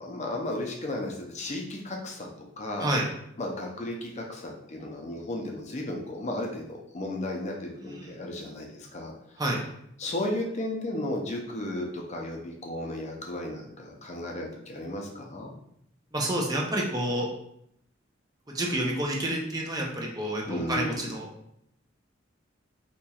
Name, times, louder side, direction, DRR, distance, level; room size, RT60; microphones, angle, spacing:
voice 1, 0.0-2.3 2.6-2.9 3.4-9.1 10.0-15.5 20.5-21.0, left 1 dB, 35° left, 0 dB, 0.5 m, -34 dB
voice 2, 7.8-8.2 9.4-9.6 16.1-17.3 18.5-21.3, right 1 dB, 20° right, -1 dB, 0.6 m, -29 dB
4.2 x 2.9 x 2.3 m, 0.74 s
head